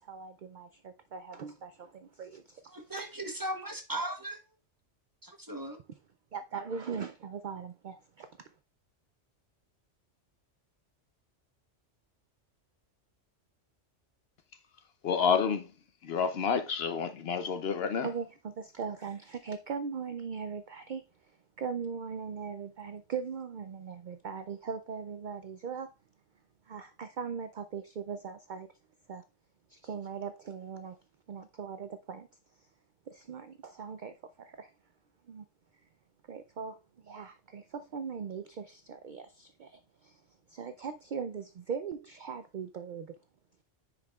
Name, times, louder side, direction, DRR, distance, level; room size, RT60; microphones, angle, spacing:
voice 1, 0.0-2.6 6.3-8.3 18.0-21.0 21.6-25.9 26.7-28.7 29.1-29.2 29.7-31.0 31.3-32.3 33.1-34.7 35.3-35.4 36.3-36.8 37.0-40.2 40.5-43.1, right 6 dB, 60° right, 0.5 m, -40 dB
voice 2, 2.7-4.4 5.2-5.8, right 1 dB, 20° right, 0.9 m, -37 dB
voice 3, 15.0-15.7 16.0-18.1, left 6 dB, 60° left, 0.8 m, -29 dB
9.5 x 4.9 x 2.3 m
omnidirectional pair, 1.3 m